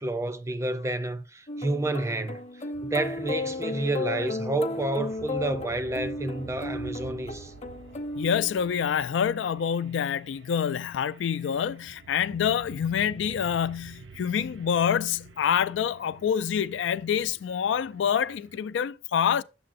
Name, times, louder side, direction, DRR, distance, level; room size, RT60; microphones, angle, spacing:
voice 1, 0.0-7.5, right 2 dB, 15° right, 0.5 m, -30 dB
sound 1, 1.5-8.9, left 2 dB, 35° left, 0.7 m, -34 dB
sound 2, 2.7-18.7, right 5 dB, 70° right, 0.6 m, -50 dB
voice 2, 8.2-19.4, left 8 dB, 75° left, 0.3 m, -26 dB
8.6 x 6.7 x 2.5 m
head